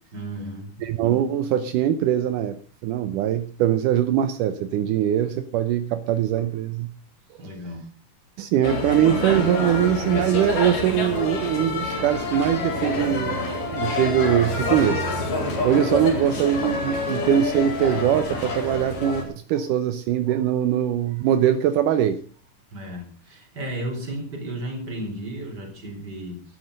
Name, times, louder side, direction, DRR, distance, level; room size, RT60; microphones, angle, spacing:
voice 1, 0.1-0.8 7.4-7.9 22.7-26.4, right 1 dB, 30° right, 4 dB, 4.4 m, -33 dB
voice 2, 0.8-6.9 8.4-15.3 15.6-22.2, right 10 dB, 80° right, 10 dB, 2.4 m, -22 dB
sound 1, 8.6-19.2, left 2 dB, 75° left, 6.0 m, -27 dB
13.5 x 11.5 x 6.7 m, 0.43 s
omnidirectional pair, 3.8 m